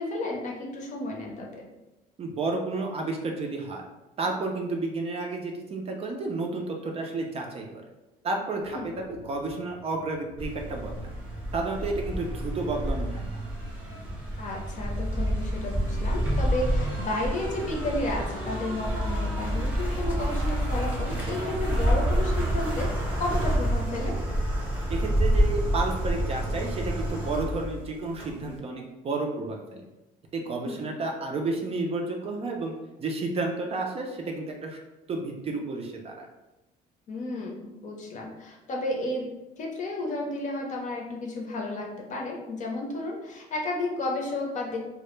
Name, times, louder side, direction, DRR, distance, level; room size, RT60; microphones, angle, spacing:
voice 1, 0.0-1.7 8.7-8.9 14.4-24.2 30.6-30.8 37.1-39.3 39.6-44.8, left 2 dB, 45° left, -1 dB, 0.6 m, -32 dB
voice 2, 2.2-3.8 4.2-7.7 8.2-11.1 11.5-13.4 24.9-29.8 30.3-34.8 35.1-36.3, right 3 dB, 35° right, 1 dB, 0.4 m, -31 dB
sound 1, 8.6-18.6, left 1 dB, 85° left, 0.6 m, -49 dB
sound 2, 10.4-28.5, equal, 10° right, 0.8 m, -28 dB
2.1 x 2.0 x 3.0 m, 1.0 s
cardioid pair, 110°, 17 cm